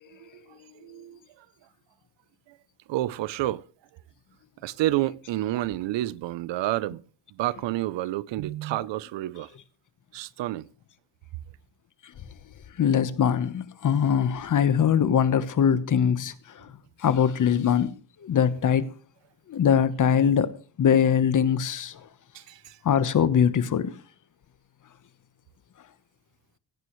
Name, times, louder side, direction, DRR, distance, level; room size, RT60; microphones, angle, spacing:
voice 1, 0.1-0.4 0.8-1.5 2.5-2.6 2.9-3.6 4.6-7.0 7.3-9.5 10.1-10.7 22.3-22.8, right 15 dB, 75° right, 0.8 m, -29 dB
voice 2, 12.8-16.7 17.0-17.9 18.2-18.9 19.5-20.5 20.8-22.0 22.8-23.9, left 8 dB, 45° left, 1.2 m, -22 dB
16.5 x 16.0 x 3.2 m
cardioid pair, 135°, 44 cm